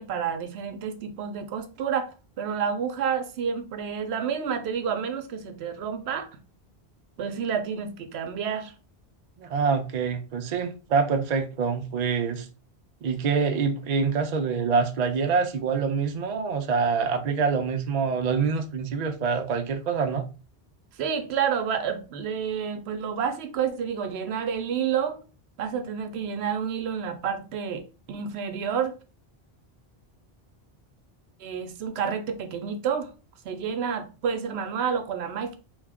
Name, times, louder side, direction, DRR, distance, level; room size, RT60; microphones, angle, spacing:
voice 1, 0.0-6.3 7.2-8.7 20.9-25.2 25.6-27.8 28.1-28.9 31.4-33.1 33.4-35.6, right 7 dB, 75° right, 0.8 m, -29 dB
voice 2, 9.4-12.5 13.0-20.2, right 5 dB, 55° right, 0.5 m, -25 dB
2.7 x 2.3 x 3.4 m
omnidirectional pair, 1.1 m